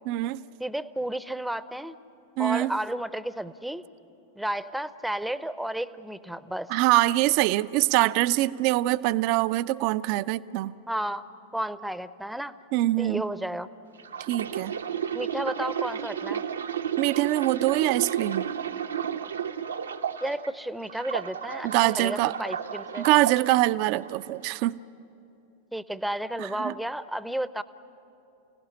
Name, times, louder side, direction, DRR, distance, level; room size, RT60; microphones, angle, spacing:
voice 1, 0.1-0.4 2.4-2.7 6.7-10.7 12.7-13.2 14.3-14.7 17.0-18.5 21.6-22.4 23.0-24.8 26.4-26.7, right 17 dB, 45° right, 15 dB, 0.5 m, -24 dB
voice 2, 0.6-2.0 2.4-3.8 4.4-6.7 10.9-11.2 11.5-12.6 13.0-13.7 15.1-16.4 20.2-23.1 25.7-27.6, right 1 dB, ahead, 15 dB, 0.7 m, -32 dB
sound 1, 14.0-20.5 20.9-23.4 24.0-24.3, right 8 dB, 70° right, 0.9 m, -32 dB
29.0 x 17.0 x 10.0 m, 2.9 s
figure-of-eight pair, 90°, 0 cm